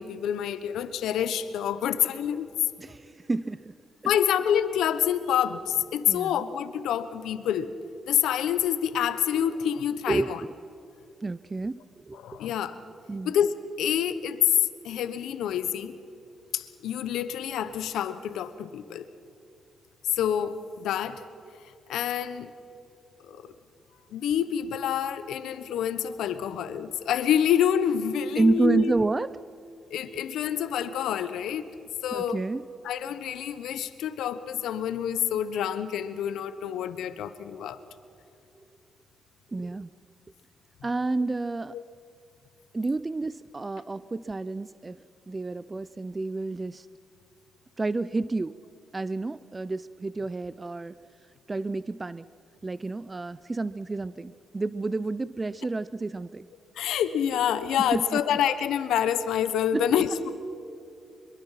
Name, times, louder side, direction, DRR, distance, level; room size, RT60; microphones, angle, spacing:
voice 1, 0.0-2.5 4.0-7.7 8.1-10.4 12.1-12.8 13.2-14.6 14.8-15.9 16.5-19.1 20.1-21.2 21.9-22.5 23.2-23.5 24.1-28.9 29.9-31.7 32.0-32.4 32.8-37.8 41.7-41.8 56.7-60.3, left 9 dB, 90° left, 12 dB, 1.0 m, -27 dB
voice 2, 2.8-3.7 4.0-4.1 6.1-6.5 10.1-10.5 11.2-12.4 13.1-13.3 28.4-29.3 30.1-30.2 32.1-32.6 39.5-39.9 40.8-41.8 42.7-45.0 45.3-46.9 47.8-48.6 48.9-51.0 51.5-52.3 52.6-56.5 57.8-58.2 59.7-59.9, right 3 dB, 25° right, 16 dB, 0.5 m, -29 dB
24.0 x 22.5 x 5.8 m, 2.6 s
cardioid pair, 80°, 0 cm